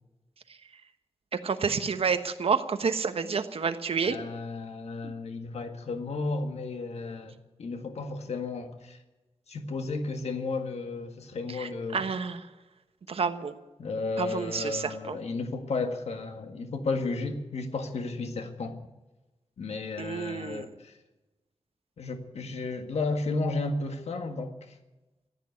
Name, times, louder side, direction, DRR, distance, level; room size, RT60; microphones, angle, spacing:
voice 1, 1.4-4.2 5.0-5.1 11.6-12.4 13.1-13.5 14.2-15.2 20.0-20.7, right 5 dB, 65° right, 9 dB, 1.2 m, -29 dB
voice 2, 4.0-7.3 7.6-9.0 9.5-12.0 13.8-18.8 19.6-21.0 22.0-24.8, left 3 dB, 80° left, 6 dB, 1.8 m, -33 dB
15.0 x 9.9 x 9.5 m, 1.1 s
wide cardioid pair, 120°, 11 cm